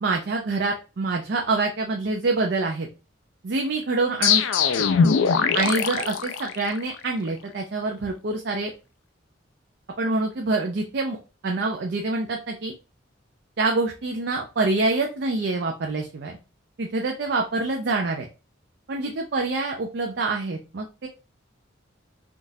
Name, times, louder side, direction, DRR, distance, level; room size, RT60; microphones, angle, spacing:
voice 1, 0.0-2.9 3.4-4.4 5.5-8.7 10.0-11.2 11.4-12.7 13.6-16.4 16.8-18.3 18.9-21.1, right 3 dB, 60° right, 2 dB, 0.5 m, -26 dB
sound 1, 4.2-7.0, left 6 dB, 85° left, 0.4 m, -21 dB
3.7 x 2.4 x 2.6 m, 0.31 s
head